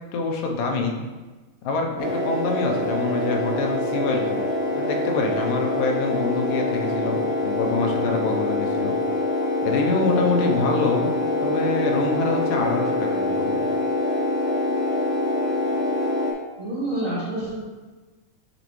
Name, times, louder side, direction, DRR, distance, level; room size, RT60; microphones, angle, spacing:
voice 1, 0.1-1.0 1.6-4.4 4.7-9.0 9.6-11.1 11.4-13.6, left 3 dB, 85° left, 2 dB, 2.5 m, -25 dB
sound 1, 2.0-16.3, left 2 dB, 60° left, 0.6 m, -25 dB
voice 2, 16.6-17.6, right 1 dB, 45° right, -10 dB, 1.0 m, -28 dB
9.4 x 4.0 x 3.1 m, 1.2 s
omnidirectional pair, 3.7 m